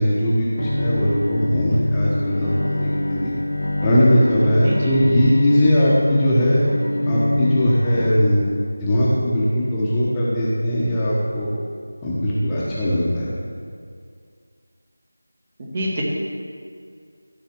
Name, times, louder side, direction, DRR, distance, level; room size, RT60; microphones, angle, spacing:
voice 1, 0.0-3.3 3.8-6.6 7.1-8.5 8.8-11.5 12.0-13.3, equal, 10° left, -9 dB, 1.3 m, -19 dB
Bowed string instrument, 0.6-8.1, left 1 dB, 85° left, 1.0 m, -24 dB
voice 2, 15.6-16.0, equal, 30° right, -3 dB, 1.9 m, -27 dB
14.5 x 4.8 x 6.2 m, 2.2 s
figure-of-eight pair, 165°, 0 cm